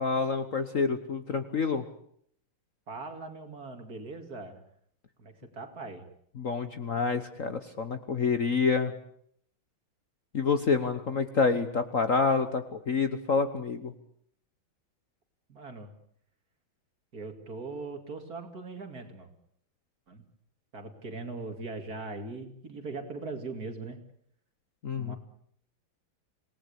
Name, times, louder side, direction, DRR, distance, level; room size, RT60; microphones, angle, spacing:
voice 1, 0.0-1.8 6.4-8.9 10.3-13.9 24.8-25.1, left 5 dB, 45° left, 9 dB, 1.3 m, -28 dB
voice 2, 2.9-4.6 5.2-6.1 15.5-15.9 17.1-19.3 20.1-20.2 20.7-24.0 25.0-25.2, right 3 dB, 45° right, 6 dB, 3.0 m, -40 dB
27.0 x 18.5 x 8.3 m, 0.66 s
omnidirectional pair, 2.3 m